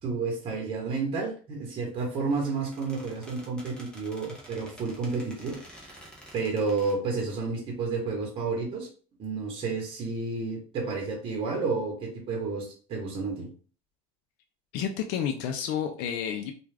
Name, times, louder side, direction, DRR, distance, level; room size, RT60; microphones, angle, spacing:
voice 1, 0.0-5.6 5.8-6.1 6.3-8.9 9.2-13.5, right 4 dB, 30° right, 0 dB, 1.1 m, -31 dB
Squeak, 2.2-7.3, equal, 5° left, 0.7 m, -50 dB
voice 2, 14.7-16.5, left 8 dB, 55° left, 4 dB, 0.4 m, -30 dB
2.4 x 2.3 x 3.3 m, 0.39 s
supercardioid pair, 140°, 17 cm